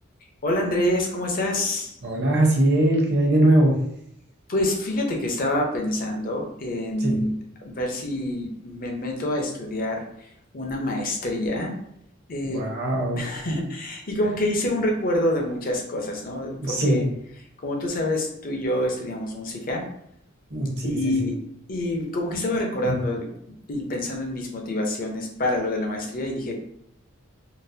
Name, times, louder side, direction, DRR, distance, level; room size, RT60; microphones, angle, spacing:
voice 1, 0.4-2.0 4.5-7.3 7.6-11.7 12.3-12.6 13.1-17.0 17.6-19.8 20.8-21.4 21.7-23.3 23.7-26.5, left 1 dB, 45° left, 1 dB, 0.6 m, -27 dB
voice 2, 2.0-3.8 7.0-7.2 12.4-13.3 16.6-17.0 20.5-21.3 22.8-23.0, right 1 dB, 55° right, -2 dB, 0.9 m, -21 dB
3.8 x 2.1 x 2.7 m, 0.73 s
head